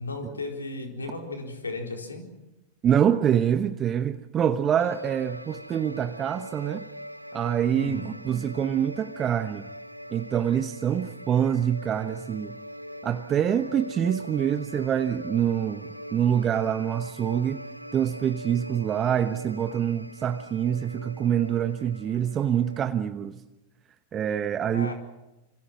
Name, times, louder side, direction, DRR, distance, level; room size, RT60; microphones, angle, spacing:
voice 1, 0.0-2.3 7.7-8.2 24.7-24.9, left 3 dB, 75° left, 4.4 m, -35 dB
voice 2, 2.8-6.8 7.3-9.7 10.1-12.6 13.0-17.6 17.9-23.4 24.1-24.9, right 9 dB, 25° right, 1.1 m, -25 dB
sound 1, 4.8-22.8, equal, 90° right, 1.0 m, -42 dB
28.0 x 26.0 x 6.0 m
figure-of-eight pair, 90°, 0 cm